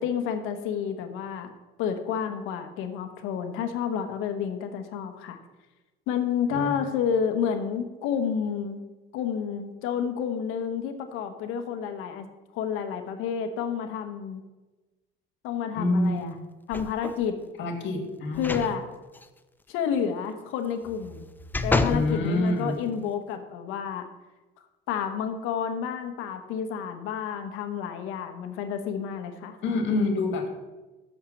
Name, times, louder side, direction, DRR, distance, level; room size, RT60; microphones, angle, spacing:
voice 1, 0.0-1.5 1.8-5.4 6.1-8.8 9.1-12.3 12.5-14.4 15.4-16.4 16.7-17.4 18.4-18.9 19.7-21.3 21.6-24.1 24.9-29.6, left 7 dB, 85° left, 7 dB, 1.1 m, -30 dB
voice 2, 15.7-16.4 17.6-18.6 21.9-22.7 29.6-30.5, left 2 dB, 65° left, 4 dB, 1.9 m, -26 dB
sound 1, 16.7-17.3 18.3-18.7 19.1-19.2 20.8-22.1 22.7-22.8, left 2 dB, 10° left, 0.5 m, -29 dB
6.6 x 5.8 x 7.1 m, 1.1 s
cardioid pair, 115°, 21 cm